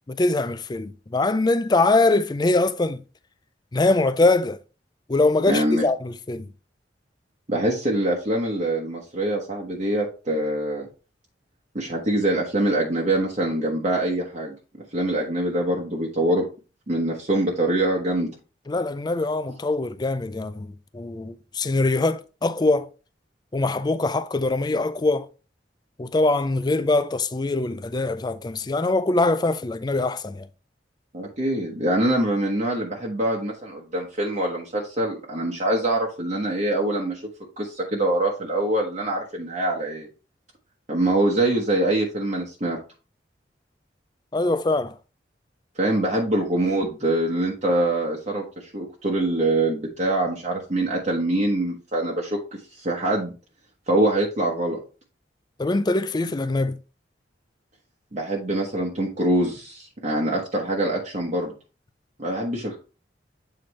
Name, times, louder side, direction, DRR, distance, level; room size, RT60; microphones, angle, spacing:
voice 1, 0.1-3.0 3.7-4.6 5.1-6.5 18.7-22.9 23.5-25.3 26.0-30.5 44.3-44.9 55.6-56.8, left 2 dB, 25° left, 0.4 m, -23 dB
voice 2, 5.5-5.8 7.5-10.8 11.7-14.5 14.9-16.4 16.9-18.3 31.1-37.2 37.6-40.1 40.9-42.8 45.8-52.4 52.8-53.3 53.9-54.8 58.1-61.5 62.2-62.8, right 1 dB, 40° right, 1.1 m, -24 dB
8.0 x 4.2 x 3.1 m
head